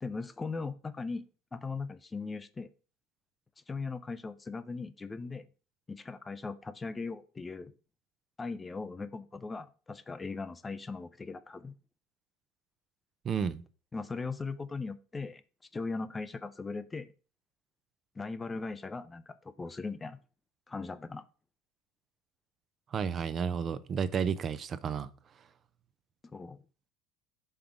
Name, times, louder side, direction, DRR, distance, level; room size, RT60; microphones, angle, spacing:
voice 1, 0.0-2.7 3.7-5.5 5.9-7.7 8.4-11.7 13.9-15.4 15.7-17.1 18.2-20.2 20.7-21.2 26.2-26.6, left 4 dB, 15° left, 0.4 m, -39 dB
voice 2, 13.2-13.6 22.9-25.1, right 7 dB, 35° right, 0.5 m, -32 dB
5.4 x 3.7 x 5.8 m
supercardioid pair, 120°, 0 cm